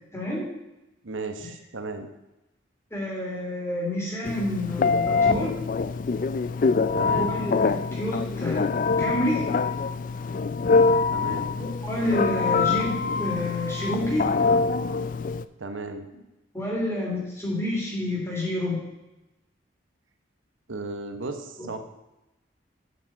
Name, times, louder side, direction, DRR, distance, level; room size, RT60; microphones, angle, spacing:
voice 1, 0.1-0.4 1.4-1.5 2.9-5.5 7.1-8.7 9.0-9.5 11.6-14.3 16.5-18.8 21.6-21.7, left 1 dB, 15° left, -3 dB, 2.8 m, -29 dB
voice 2, 1.0-2.1 6.9-7.4 11.1-11.5 15.6-16.1 20.7-21.8, right 3 dB, 85° right, 6 dB, 1.0 m, -34 dB
Telephone, 4.2-15.4, left 4 dB, 45° left, 0.3 m, -24 dB
7.6 x 6.0 x 7.5 m, 0.95 s
head